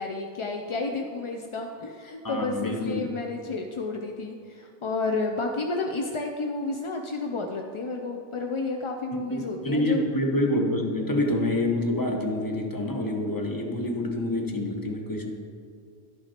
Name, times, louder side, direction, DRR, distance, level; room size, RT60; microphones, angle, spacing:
voice 1, 0.0-10.0, left 3 dB, 50° left, 3 dB, 0.4 m, -31 dB
voice 2, 2.2-3.1 9.3-15.3, left 1 dB, 20° left, 2 dB, 0.8 m, -27 dB
11.0 x 5.8 x 4.3 m, 2.3 s
omnidirectional pair, 1.1 m